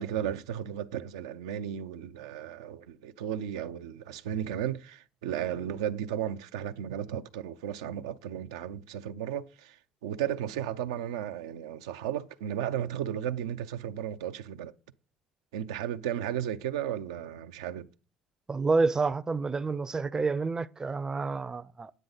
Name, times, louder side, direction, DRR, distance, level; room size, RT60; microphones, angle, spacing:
voice 1, 0.0-14.7 15.5-17.9, right 10 dB, 85° right, 0.5 m, -34 dB
voice 2, 18.5-21.9, right 4 dB, 25° right, 0.5 m, -29 dB
9.5 x 9.1 x 4.0 m
hypercardioid pair, 65°, 3 cm